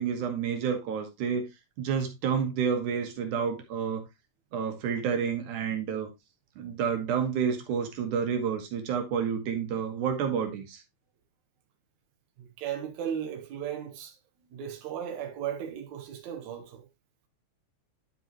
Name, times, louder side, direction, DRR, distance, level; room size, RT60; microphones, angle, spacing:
voice 1, 0.0-1.4 1.8-4.0 4.5-6.1 6.6-10.8, right 7 dB, 90° right, 2.9 m, -29 dB
voice 2, 12.4-14.2 14.5-16.8, right 9 dB, 75° right, 2.5 m, -36 dB
11.0 x 5.5 x 2.9 m
omnidirectional pair, 3.4 m